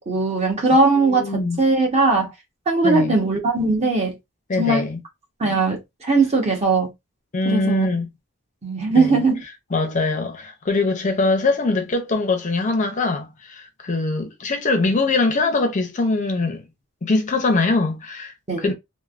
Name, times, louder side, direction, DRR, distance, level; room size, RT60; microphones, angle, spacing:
voice 1, 0.0-2.3 2.7-4.1 4.6-4.9 5.4-6.9 7.4-7.9 8.6-9.4 18.5-18.7, right 3 dB, 30° right, 0.9 m, -19 dB
voice 2, 1.0-1.6 2.8-3.2 4.5-5.0 7.3-8.1 8.9-9.2 9.7-16.6 17.0-18.7, left 3 dB, 35° left, 0.5 m, -22 dB
3.2 x 2.1 x 2.4 m
head